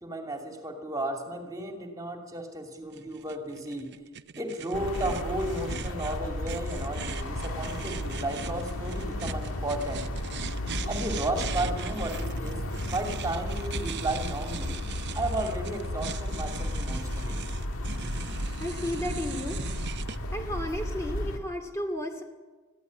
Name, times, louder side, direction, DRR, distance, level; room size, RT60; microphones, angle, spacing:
voice 1, 0.0-3.9 4.4-10.1 10.9-14.8 15.1-17.4, right 1 dB, 15° right, 3 dB, 2.6 m, -34 dB
sound 1, 2.9-20.2, right 7 dB, 50° right, 0.8 m, -41 dB
sound 2, 4.7-21.4, left 1 dB, 65° left, 2.1 m, -34 dB
voice 2, 18.6-19.6 20.3-22.2, left 1 dB, 15° left, 4 dB, 2.3 m, -33 dB
22.0 x 15.5 x 9.5 m, 1.3 s
head